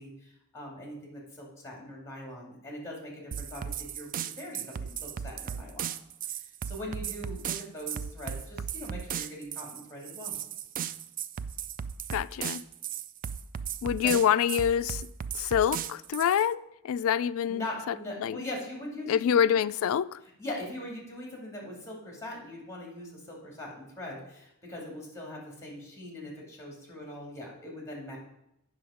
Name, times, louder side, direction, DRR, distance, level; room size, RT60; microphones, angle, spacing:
voice 1, 0.0-5.9 6.2-10.4 14.0-14.1 17.5-19.5 20.4-28.2, left 1 dB, 15° left, 2.4 m, -41 dB
sound 1, 3.3-16.5, right 8 dB, 40° right, 0.3 m, -36 dB
voice 2, 12.1-12.6 13.8-15.1 15.3-17.9 18.2-18.4 19.1-20.2, left 8 dB, 65° left, 0.3 m, -26 dB
8.6 x 6.3 x 5.0 m
head